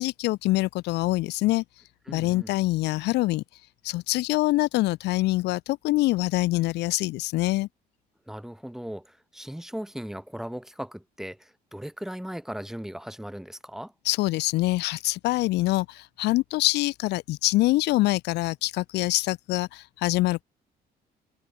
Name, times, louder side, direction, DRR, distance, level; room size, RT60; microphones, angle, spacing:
voice 1, 0.0-1.6 2.1-3.4 3.8-7.7 14.1-20.4, left 19 dB, 85° left, 4.1 m, -25 dB
voice 2, 2.1-2.5 8.3-13.9, equal, ahead, 4.8 m, -38 dB
cardioid pair, 110°, 17 cm